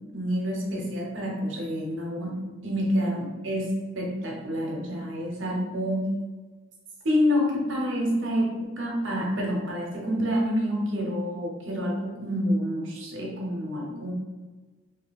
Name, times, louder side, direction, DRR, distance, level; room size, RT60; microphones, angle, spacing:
voice 1, 0.1-2.3 2.6-6.2 7.0-14.1, equal, 70° right, -1 dB, 0.9 m, -28 dB
2.8 x 2.8 x 4.0 m, 1.3 s
head